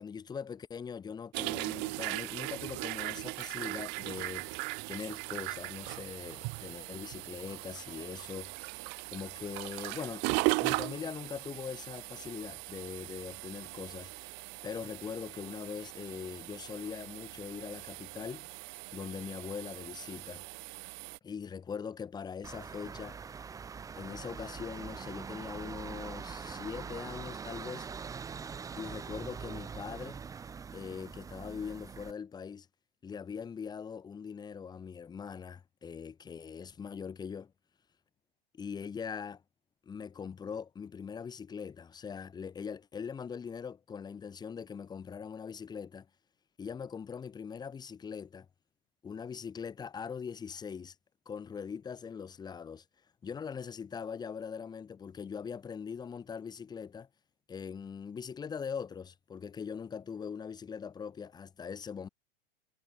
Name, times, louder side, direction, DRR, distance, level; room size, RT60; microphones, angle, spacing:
voice 1, 0.0-4.5 4.9-8.7 9.1-10.2 10.6-14.3 14.6-18.5 18.9-20.4 21.2-23.2 24.0-27.9 28.7-30.2 30.7-32.7 33.0-37.5 38.5-39.4 39.9-46.1 46.6-48.5 49.0-50.9 51.3-52.8 53.2-57.1 57.5-62.1, left 6 dB, 15° left, 6.1 m, -41 dB
sound 1, 1.3-21.2, right 30 dB, 35° right, 2.1 m, -38 dB
sound 2, 22.4-32.1, right 6 dB, 10° right, 1.8 m, -43 dB
supercardioid pair, 165°, 30 cm